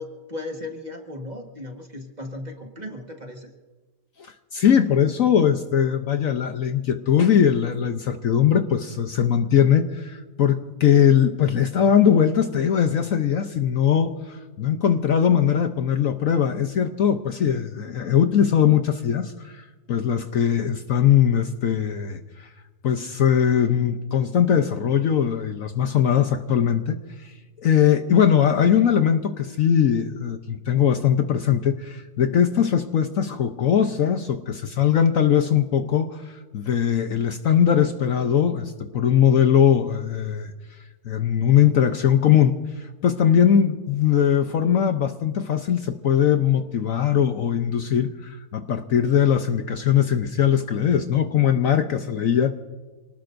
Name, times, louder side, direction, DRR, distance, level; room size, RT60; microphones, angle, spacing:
voice 1, 0.0-3.5, left 2 dB, 25° right, 3 dB, 1.5 m, -36 dB
voice 2, 4.2-22.5 22.8-27.3 27.6-40.5 41.0-52.5, left 8 dB, 60° left, 7 dB, 1.1 m, -20 dB
28.0 x 19.0 x 2.6 m, 1.3 s
omnidirectional pair, 1.8 m